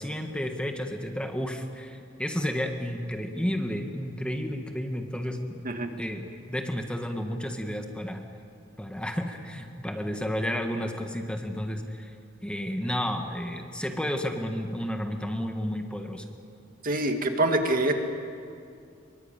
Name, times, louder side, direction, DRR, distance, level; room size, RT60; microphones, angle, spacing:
voice 1, 0.0-5.6 6.0-8.2 8.8-12.1 12.4-16.2, equal, 5° left, 4 dB, 1.7 m, -32 dB
voice 2, 16.8-17.9, right 2 dB, 45° right, 5 dB, 2.2 m, -25 dB
25.5 x 23.5 x 9.1 m, 2.4 s
head